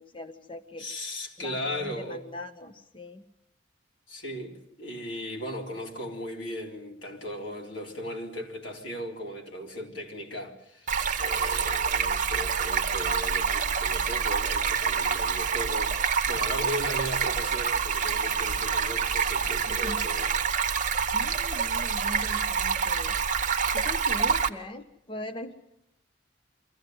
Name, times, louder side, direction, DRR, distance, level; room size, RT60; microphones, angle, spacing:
voice 1, 0.0-0.9 1.4-3.2 19.7-20.0 21.1-23.2 23.7-25.5, left 1 dB, 25° left, 0.8 m, -41 dB
voice 2, 0.8-2.2 4.1-20.3, equal, 75° left, 3.8 m, -37 dB
Stream, 10.9-24.5, right 6 dB, 40° right, 0.9 m, -27 dB
24.0 x 15.5 x 9.3 m
head